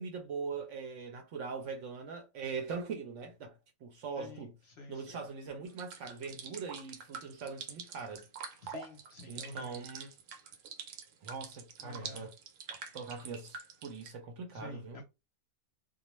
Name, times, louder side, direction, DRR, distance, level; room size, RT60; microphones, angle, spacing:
voice 1, 0.0-4.5 4.9-8.3 9.3-10.1 11.2-12.3 12.9-15.0, right 5 dB, 65° right, 0.8 m, -41 dB
voice 2, 4.2-5.2 8.6-9.8 11.8-12.3 14.5-15.0, left 1 dB, 55° left, 0.8 m, -48 dB
sound 1, 5.7-14.1, right 6 dB, 85° right, 1.1 m, -46 dB
2.3 x 2.2 x 3.0 m
omnidirectional pair, 1.5 m